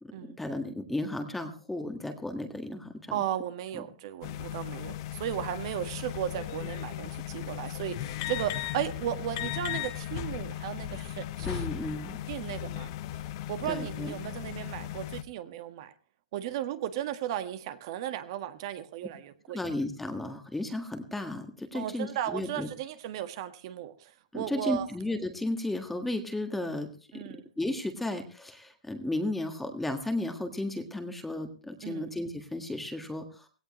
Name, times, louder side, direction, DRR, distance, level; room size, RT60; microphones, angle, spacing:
voice 1, 0.0-3.2 11.5-12.2 13.6-14.2 19.5-22.7 24.3-33.5, left 1 dB, 5° left, 6 dB, 1.7 m, -34 dB
voice 2, 3.1-11.6 12.3-12.9 13.5-15.9 16.3-19.6 21.7-24.9 27.1-27.5 31.8-32.1, right 11 dB, 40° right, 10 dB, 1.7 m, -35 dB
sound 1, 4.2-15.2, left 12 dB, 40° left, 1.3 m, -37 dB
18.5 x 17.0 x 3.2 m, 0.36 s
hypercardioid pair, 160°, 4 cm